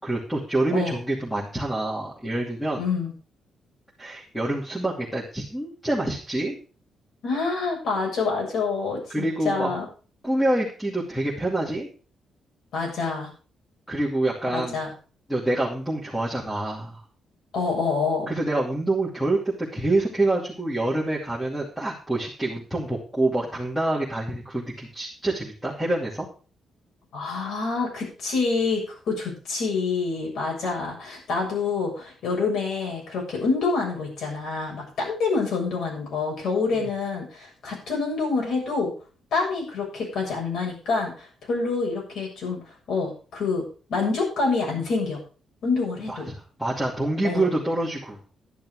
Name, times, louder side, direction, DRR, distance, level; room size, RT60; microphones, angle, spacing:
voice 1, 0.0-2.8 4.0-6.6 9.1-9.7 10.2-11.9 13.9-14.8 15.3-17.0 18.3-26.3 36.7-36.9 46.1-48.2, right 2 dB, ahead, -4 dB, 2.6 m, -26 dB
voice 2, 2.8-3.1 7.2-9.9 12.7-13.3 14.5-14.9 17.5-18.3 27.1-38.9 39.3-42.6 42.9-43.6 43.9-45.2 45.6-46.3 47.2-47.5, left 4 dB, 65° left, -1 dB, 7.3 m, -27 dB
11.5 x 10.5 x 4.8 m, 0.37 s
cardioid pair, 160°, 0 cm